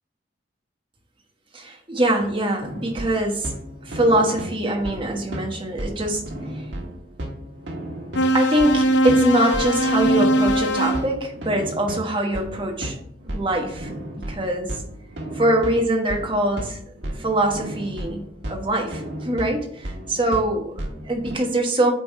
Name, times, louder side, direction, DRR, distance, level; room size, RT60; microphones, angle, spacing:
voice 1, 1.5-3.5 3.8-6.2 6.5-6.6 8.3-13.0 13.3-13.9 14.3-14.7 15.3-16.8 17.2-21.9, right 1 dB, 25° right, 2 dB, 1.1 m, -23 dB
sound 1, 2.6-21.4, right 1 dB, 70° right, 1.5 m, -34 dB
sound 2, 8.2-11.1, right 1 dB, 70° left, 0.7 m, -20 dB
8.3 x 3.5 x 4.3 m, 0.68 s
head